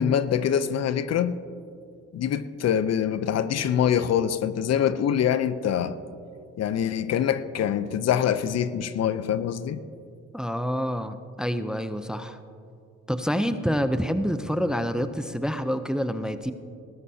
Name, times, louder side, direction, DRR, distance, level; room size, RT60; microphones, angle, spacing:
voice 1, 0.0-1.4 2.1-6.0 6.6-9.8, left 9 dB, 60° left, 0.6 m, -24 dB
voice 2, 10.3-12.4 13.1-16.5, equal, ahead, 0.5 m, -27 dB
19.0 x 14.0 x 2.8 m
cardioid pair, 90°, 30 cm